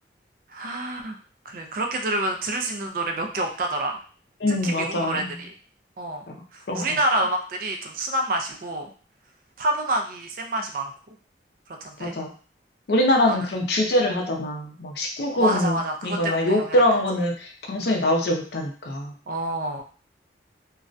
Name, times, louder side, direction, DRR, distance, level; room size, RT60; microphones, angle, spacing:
voice 1, 0.5-1.2 1.5-4.0 4.6-5.5 6.0-6.3 6.5-8.9 9.6-11.1 11.8-12.2 13.3-13.5 15.3-16.8 19.3-19.8, right 1 dB, 50° right, 3 dB, 0.4 m, -28 dB
voice 2, 4.4-5.2 6.3-6.4 6.7-7.0 12.0-12.3 12.9-19.1, left 1 dB, 65° left, 2 dB, 0.5 m, -23 dB
2.3 x 2.1 x 2.5 m, 0.41 s
head